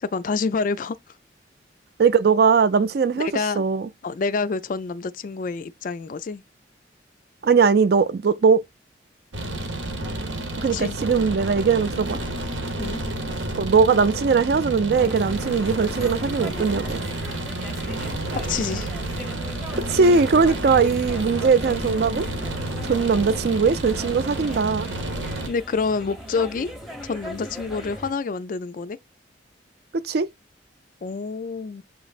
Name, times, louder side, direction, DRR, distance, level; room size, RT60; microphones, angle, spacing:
voice 1, 0.0-1.0 3.1-3.6 4.0-6.4 10.7-11.0 12.8-13.0 18.3-18.9 25.5-26.7 27.0-29.0 31.0-31.8, left 4 dB, 45° left, 0.3 m, -27 dB
voice 2, 2.0-3.3 3.6-3.9 7.4-8.6 10.6-12.2 13.6-17.0 19.9-22.3 22.8-24.9 29.9-30.3, right 5 dB, 55° right, 0.4 m, -20 dB
sound 1, 9.3-25.5, right 1 dB, 85° right, 1.0 m, -30 dB
sound 2, 14.9-28.1, equal, ahead, 0.7 m, -39 dB
6.8 x 3.1 x 2.4 m
head